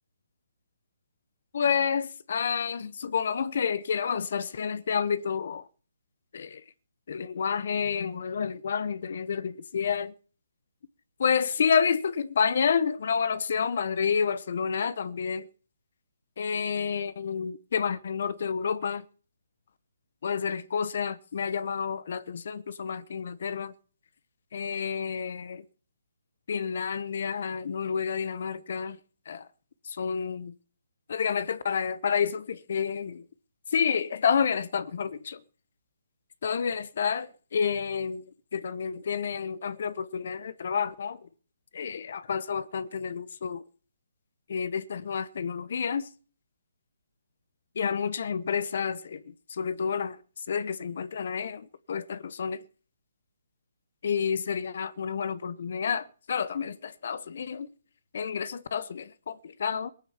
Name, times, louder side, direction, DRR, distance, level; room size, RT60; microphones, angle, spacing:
voice 1, 1.5-5.7 6.3-6.6 7.1-10.1 11.2-15.5 16.4-19.0 20.2-23.7 24.5-25.7 26.5-29.0 29.3-29.5 29.8-30.5 31.1-33.2 33.7-35.4 36.4-38.2 38.5-41.3 41.7-43.6 44.5-46.1 47.7-50.2 50.5-52.6 54.0-57.7 58.1-59.9, left 6 dB, 55° left, 0.9 m, -29 dB
18.5 x 9.1 x 7.2 m
hypercardioid pair, 145°, 0 cm